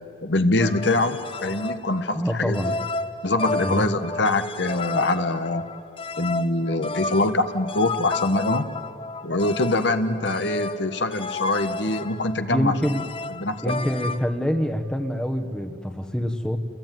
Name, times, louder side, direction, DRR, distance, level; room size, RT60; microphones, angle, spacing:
voice 1, 0.2-2.7 3.2-5.7 6.2-8.6 9.2-13.0 13.4-13.7, left 2 dB, 70° left, 9 dB, 1.3 m, -24 dB
sound 1, 0.6-14.3, left 3 dB, 30° left, 0.7 m, -32 dB
voice 2, 2.1-2.8 3.6-3.9 12.5-13.0 13.6-16.6, equal, 5° left, 6 dB, 1.3 m, -26 dB
29.5 x 21.5 x 9.2 m, 2.8 s
head